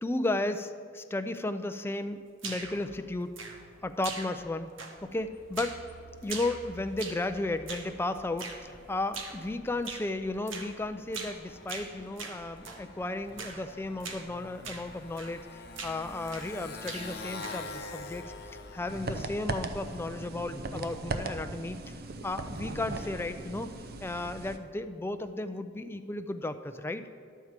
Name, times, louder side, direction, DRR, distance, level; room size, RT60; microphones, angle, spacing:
voice 1, 0.0-3.3 3.8-4.7 5.0-5.8 6.2-15.4 15.8-18.2 18.7-21.8 22.2-23.7 24.0-27.0, left 2 dB, 10° left, 9 dB, 0.4 m, -34 dB
sound 1, 2.4-2.8 3.3-3.8 4.0-4.5 4.8-5.2 5.5-5.8 6.2-7.3 7.7-7.9 8.4-8.6 9.1-9.4 9.8-10.1 10.5-10.7 11.1-11.4 11.7-12.8 13.4-13.6 14.0-14.3 14.6-14.9 15.2-15.4 15.7-16.6 16.8-17.7, right 4 dB, 80° right, 1.1 m, -41 dB
Motorcycle, 5.0-20.4, left 2 dB, 55° left, 0.9 m, -47 dB
sound 2, 18.9-24.6, right 2 dB, 50° right, 0.6 m, -38 dB
11.5 x 4.6 x 7.3 m, 2.3 s
head